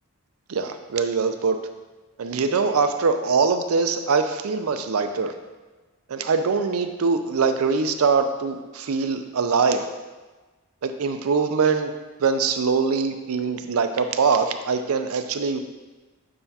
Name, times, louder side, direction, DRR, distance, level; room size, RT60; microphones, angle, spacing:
voice 1, 0.5-1.6 2.2-5.3 6.1-9.9 10.8-11.9 12.2-15.6, right 5 dB, 85° right, 8 dB, 0.5 m, -23 dB
7.7 x 5.7 x 2.8 m, 1.2 s
head